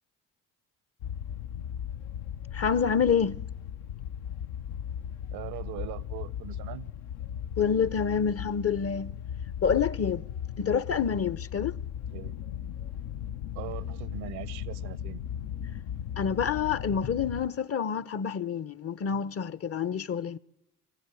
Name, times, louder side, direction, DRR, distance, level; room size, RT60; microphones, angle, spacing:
sound 1, 1.0-17.5, left 9 dB, 70° left, 0.8 m, -37 dB
voice 1, 2.5-3.4 7.6-9.1 9.6-10.2 10.6-11.8 16.2-20.4, left 7 dB, 35° left, 0.7 m, -27 dB
voice 2, 5.3-6.9 12.1-12.4 13.5-15.2, right 12 dB, 65° right, 0.8 m, -40 dB
23.0 x 16.5 x 9.1 m
hypercardioid pair, 50°, 40 cm